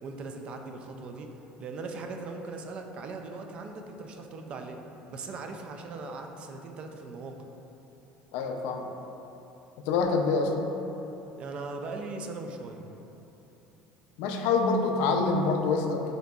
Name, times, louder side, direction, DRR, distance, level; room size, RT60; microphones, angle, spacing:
voice 1, 0.0-1.3 1.6-4.8 5.1-7.4 11.4-12.9, right 3 dB, 40° right, 4 dB, 0.3 m, -39 dB
voice 2, 8.3-8.9 9.9-10.7 14.2-16.1, left 4 dB, 75° left, 3 dB, 0.4 m, -26 dB
6.2 x 2.7 x 2.3 m, 3.0 s
cardioid pair, 140°, 3 cm